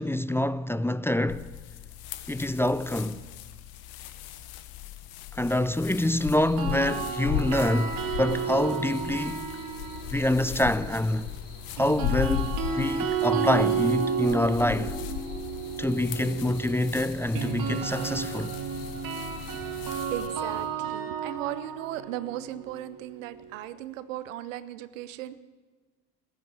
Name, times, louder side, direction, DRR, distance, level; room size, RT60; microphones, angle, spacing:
voice 1, 0.0-1.5 2.3-3.2 5.3-9.5 10.1-11.3 11.8-15.0 15.8-18.5, left 1 dB, 5° left, 0.4 m, -26 dB
sound 1, 1.3-20.3, left 12 dB, 70° left, 1.1 m, -38 dB
sound 2, 5.9-20.7, left 4 dB, 55° left, 5.1 m, -48 dB
sound 3, 6.4-10.5 11.8-23.7, right 6 dB, 60° right, 2.1 m, -32 dB
voice 2, 20.1-25.4, right 13 dB, 90° right, 0.8 m, -37 dB
14.0 x 9.5 x 9.6 m
hypercardioid pair, 70°, 37 cm